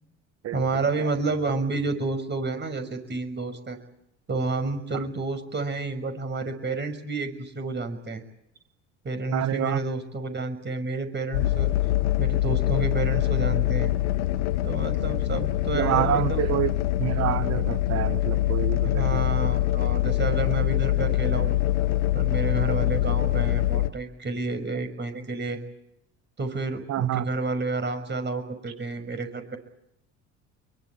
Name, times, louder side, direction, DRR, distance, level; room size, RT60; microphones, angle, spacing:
voice 1, 0.5-3.8 4.3-8.2 9.0-11.7 12.2-13.9 14.6-16.5 18.8-21.6 22.1-25.6 26.4-29.6, right 3 dB, 30° right, 7 dB, 6.1 m, -30 dB
voice 2, 9.3-9.8 15.7-16.7 17.0-19.2 26.9-27.2, right 12 dB, 45° right, 14 dB, 1.0 m, -27 dB
sound 1, 11.3-23.9, left 15 dB, 80° left, 1.4 m, -24 dB
24.5 x 23.0 x 8.8 m, 0.80 s
hypercardioid pair, 70°, 35 cm